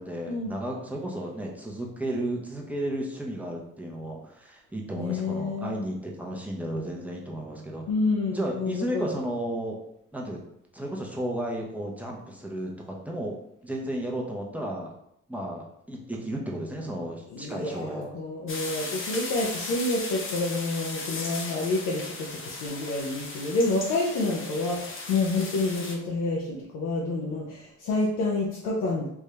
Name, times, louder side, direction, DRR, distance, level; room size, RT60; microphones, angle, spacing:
voice 1, 0.0-7.8 8.3-9.8 10.1-10.5 10.7-13.3 13.6-14.9 15.3-18.1, right 1 dB, 5° right, -1 dB, 0.8 m, -33 dB
voice 2, 4.9-5.9 7.9-9.2 17.3-29.1, left 2 dB, 85° left, -3 dB, 0.7 m, -28 dB
sound 1, 18.5-25.9, left 3 dB, 45° left, 0.8 m, -37 dB
3.5 x 2.6 x 3.3 m, 0.75 s
cardioid pair, 90°, 30 cm